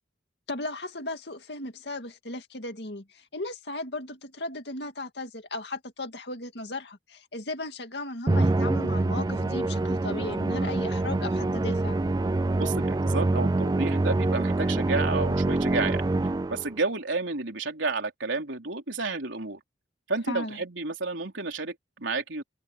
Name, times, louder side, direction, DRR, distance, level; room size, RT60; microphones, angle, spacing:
voice 1, 0.5-12.0 20.3-20.6, left 2 dB, 60° left, 2.4 m, -36 dB
Musical instrument, 8.3-16.8, right 2 dB, 20° right, 0.3 m, -25 dB
voice 2, 12.6-16.1 16.5-19.6 20.1-22.4, right 3 dB, 80° right, 3.8 m, -31 dB
head